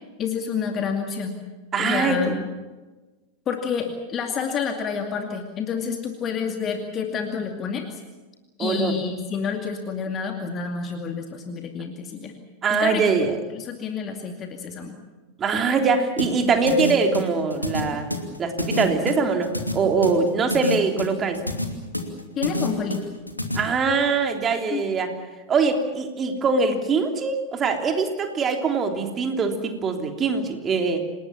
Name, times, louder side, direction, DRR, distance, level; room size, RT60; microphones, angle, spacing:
voice 1, 0.2-1.4 1.8-2.3 3.5-7.9 8.6-12.3 12.8-13.1 13.5-15.0 22.4-23.0 24.7-24.8, left 6 dB, 30° left, 4 dB, 2.4 m, -29 dB
voice 2, 1.7-2.4 8.6-9.0 12.6-13.3 15.4-18.1 18.4-21.4 23.5-25.1 25.5-31.0, right 4 dB, 25° right, 5 dB, 3.3 m, -23 dB
sound 1, 16.2-23.6, left 2 dB, 85° left, 2.7 m, -27 dB
28.0 x 19.0 x 7.4 m, 1.2 s
figure-of-eight pair, 90°, 0 cm